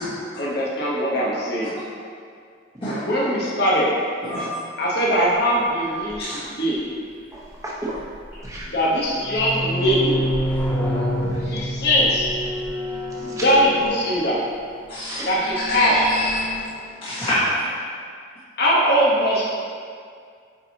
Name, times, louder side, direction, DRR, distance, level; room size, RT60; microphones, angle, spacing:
voice 1, 0.4-1.7 3.0-3.9 4.8-6.8 8.7-10.2 11.4-12.3 13.2-14.4 15.2-16.0 18.6-19.4, equal, 55° left, -5 dB, 1.1 m, -21 dB
sound 1, 6.1-6.2 7.9-8.6 9.0-14.5 15.3-16.6, equal, 10° left, 0.6 m, -28 dB
voice 2, 7.3-7.9 8.4-8.7 11.2-11.6 13.2-13.4 15.1-15.3, right 1 dB, 15° right, -6 dB, 1.0 m, -34 dB
voice 3, 14.9-15.2 15.6-16.6 17.0-17.7, left 1 dB, 30° left, -14 dB, 1.5 m, -26 dB
8.7 x 4.5 x 2.9 m, 2.2 s
head